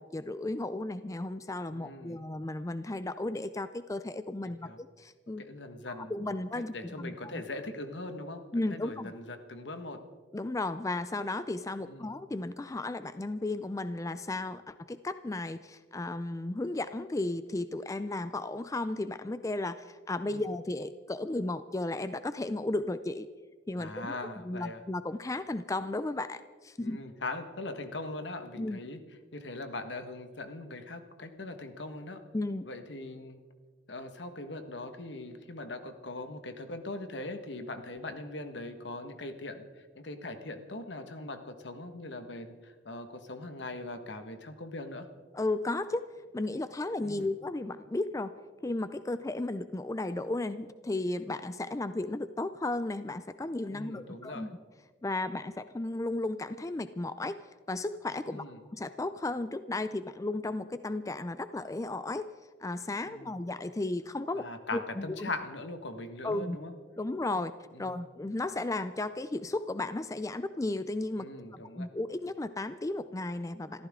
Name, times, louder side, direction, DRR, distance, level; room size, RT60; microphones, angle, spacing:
voice 1, 0.0-5.4 5.9-7.4 8.5-9.1 10.3-23.3 23.7-24.2 24.4-27.0 28.6-28.8 32.3-32.7 45.3-48.3 48.6-54.5 55.0-57.4 57.7-58.5 58.7-62.3 62.6-64.4 64.7-65.3 66.2-66.6 67.0-67.5 67.8-71.3 71.5-73.9, left 2 dB, 15° left, 12 dB, 0.4 m, -34 dB
voice 2, 1.7-2.2 4.4-4.8 5.4-6.2 6.5-8.4 8.7-10.0 11.8-12.1 20.3-20.5 23.8-24.8 26.8-29.0 29.3-32.2 32.6-33.4 33.9-45.1 47.0-47.3 53.7-54.5 58.3-58.6 63.0-63.4 64.3-66.7 67.7-68.0 71.1-71.9, left 2 dB, 75° left, 7 dB, 1.6 m, -41 dB
27.0 x 14.5 x 3.7 m, 1.4 s
head